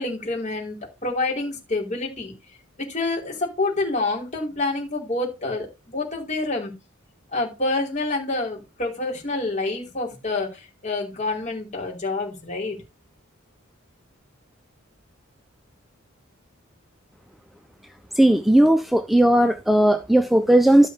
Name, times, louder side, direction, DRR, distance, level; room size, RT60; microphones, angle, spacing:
voice 1, 0.0-2.3 2.8-6.7 7.3-12.8, left 2 dB, 35° left, 5.1 m, -27 dB
voice 2, 18.2-20.9, right 1 dB, ahead, 0.6 m, -17 dB
13.0 x 5.3 x 5.0 m
head